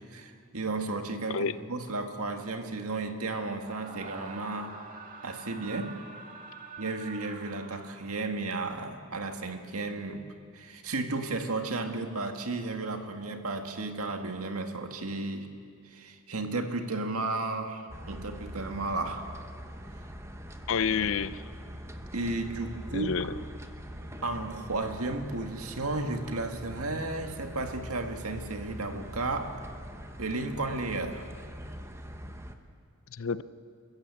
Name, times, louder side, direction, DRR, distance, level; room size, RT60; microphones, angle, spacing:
voice 1, 0.1-4.8 5.2-6.0 6.8-10.2 10.5-15.5 15.9-19.4 22.1-23.3 24.2-29.6 30.2-31.3, right 2 dB, 80° right, 5 dB, 1.9 m, -33 dB
Screaming, 3.5-8.3, right 4 dB, 40° right, 2.0 m, -46 dB
sound 1, 17.9-32.5, equal, 15° right, 1.1 m, -43 dB
voice 2, 20.7-21.4 22.9-23.3 33.1-33.4, left 6 dB, 65° left, 15 dB, 0.6 m, -29 dB
29.0 x 14.5 x 8.4 m, 2.2 s
head